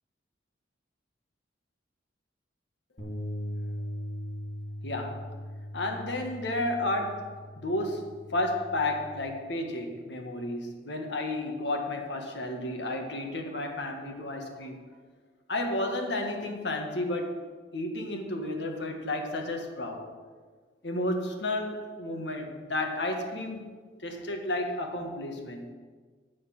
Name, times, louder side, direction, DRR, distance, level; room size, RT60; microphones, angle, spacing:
Bass guitar, 3.0-9.2, left 1 dB, 50° left, 2.3 m, -39 dB
voice 1, 4.8-5.2 5.7-14.8 15.5-17.3 17.7-20.1 20.8-23.7 24.0-25.7, left 1 dB, 70° left, 3 dB, 1.7 m, -32 dB
9.4 x 9.4 x 6.1 m, 1.5 s
head